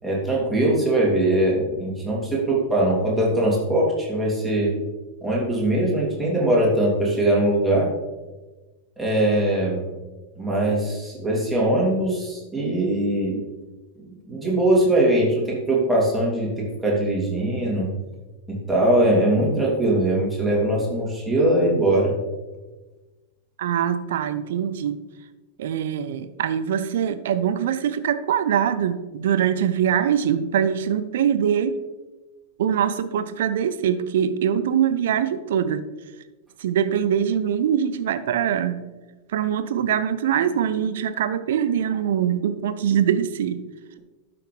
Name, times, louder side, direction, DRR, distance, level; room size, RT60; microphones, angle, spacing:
voice 1, 0.0-4.7 5.2-7.9 9.0-9.9 10.4-13.4 14.0-17.9 18.5-22.1, right 1 dB, 5° right, -5 dB, 3.0 m, -21 dB
voice 2, 23.6-25.0 25.6-31.8 32.6-35.8 36.6-38.8 39.3-43.6, right 9 dB, 60° right, 12 dB, 0.6 m, -23 dB
12.5 x 5.9 x 3.3 m, 1.2 s
figure-of-eight pair, 90°, 0 cm